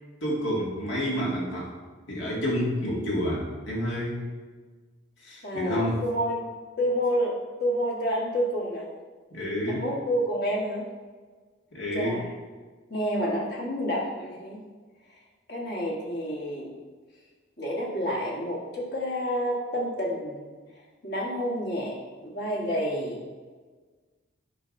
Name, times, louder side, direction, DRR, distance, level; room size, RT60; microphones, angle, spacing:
voice 1, 0.2-1.7 2.1-4.2 5.2-6.0 9.3-9.8 11.7-12.2, equal, 75° left, -5 dB, 2.1 m, -29 dB
voice 2, 5.4-6.5 6.8-7.3 7.6-8.9 9.7-10.8 11.9-12.3 12.9-14.6 15.5-16.7 17.6-20.5 21.0-22.0 22.2-23.2, equal, 55° left, -3 dB, 1.4 m, -29 dB
8.3 x 5.6 x 2.6 m, 1.4 s
head